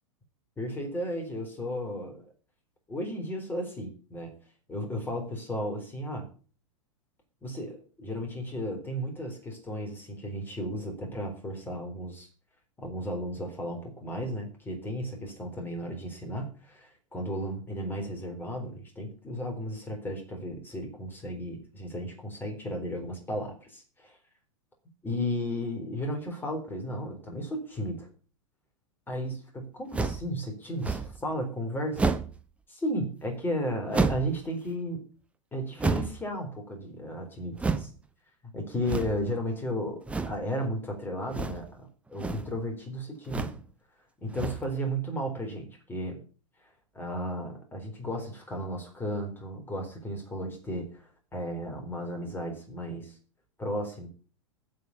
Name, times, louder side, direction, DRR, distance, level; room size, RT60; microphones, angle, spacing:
voice 1, 0.6-2.3 2.9-4.3 4.7-6.3 7.4-12.3 12.8-24.2 25.0-28.1 29.1-32.1 32.7-35.0 35.5-37.9 38.5-43.5 44.2-46.2 46.9-53.1 53.6-54.1, equal, 10° left, 3 dB, 4.0 m, -34 dB
sound 1, 29.9-30.3 30.8-31.2 31.9-32.4 33.9-34.4 35.8-36.3 37.6-37.9 38.8-39.3 40.1-40.4 41.3-41.7 42.1-42.5 43.2-43.6 44.3-44.7, right 4 dB, 5° right, 0.9 m, -30 dB
8.4 x 7.5 x 8.5 m, 0.38 s
figure-of-eight pair, 95°, 17 cm